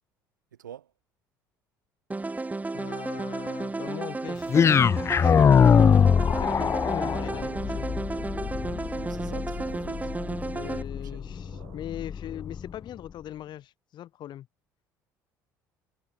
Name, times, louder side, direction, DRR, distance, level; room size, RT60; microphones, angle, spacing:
voice 1, 0.5-0.9 8.6-11.2, right 10 dB, 80° right, 6.6 m, -47 dB
sound 1, 2.1-10.8, right 3 dB, 15° right, 1.8 m, -33 dB
voice 2, 2.7-7.9 10.5-14.5, left 12 dB, 50° left, 1.7 m, -40 dB
sound 2, 3.3-12.0, right 18 dB, 60° right, 6.8 m, -56 dB
sound 3, 4.5-12.7, left 7 dB, 25° left, 0.4 m, -23 dB
figure-of-eight pair, 55°, 10 cm